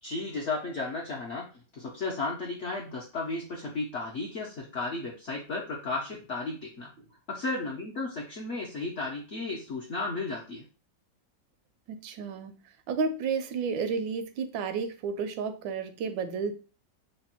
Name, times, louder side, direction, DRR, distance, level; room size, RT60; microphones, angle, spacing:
voice 1, 0.0-1.4 1.7-6.9 7.3-10.6, left 3 dB, 70° left, 0.7 m, -34 dB
voice 2, 11.9-12.6 12.9-16.5, right 5 dB, 80° right, 1.3 m, -31 dB
3.3 x 2.2 x 4.2 m
omnidirectional pair, 2.0 m